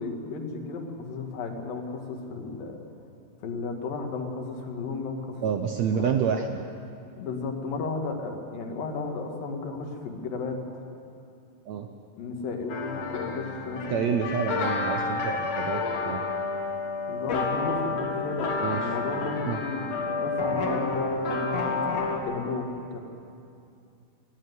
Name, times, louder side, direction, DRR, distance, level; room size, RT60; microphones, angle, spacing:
voice 1, 0.0-2.8 3.4-5.4 6.0-6.1 7.2-10.8 12.2-14.2 17.1-21.8 22.2-23.0, left 4 dB, 80° left, 3 dB, 3.5 m, -34 dB
voice 2, 5.4-6.5 11.7-11.9 13.9-16.2 18.6-18.9 19.5-19.6, right 7 dB, 75° right, 5 dB, 1.7 m, -28 dB
sound 1, 12.7-22.2, left 3 dB, 55° left, 2.6 m, -29 dB
19.0 x 16.0 x 9.6 m, 2.5 s
omnidirectional pair, 4.0 m